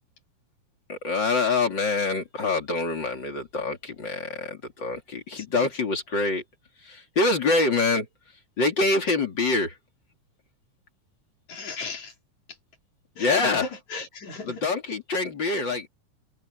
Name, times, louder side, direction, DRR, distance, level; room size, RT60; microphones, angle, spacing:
voice 1, 0.9-6.4 6.8-8.1 8.6-9.7 13.2-13.7 14.4-15.9, left 3 dB, 35° left, 3.2 m, -25 dB
voice 2, 11.5-12.1 13.2-14.6, left 4 dB, 60° left, 5.1 m, -36 dB
omnidirectional pair, 3.8 m